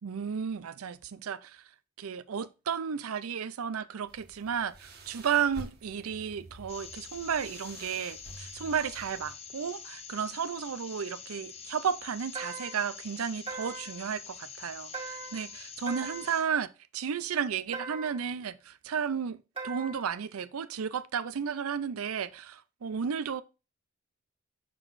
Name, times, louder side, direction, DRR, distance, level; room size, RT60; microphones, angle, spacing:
voice 1, 0.0-1.6 2.0-23.4, right 7 dB, 85° right, 0.5 m, -33 dB
sound 1, 4.1-9.3, right 1 dB, 50° right, 1.5 m, -49 dB
sound 2, 6.7-16.4, left 6 dB, 30° left, 0.8 m, -46 dB
sound 3, 12.3-12.9 13.5-14.0 14.9-15.5 15.9-16.4 17.7-18.3 19.6-20.1, right 4 dB, 25° right, 1.5 m, -40 dB
6.3 x 6.1 x 2.6 m
head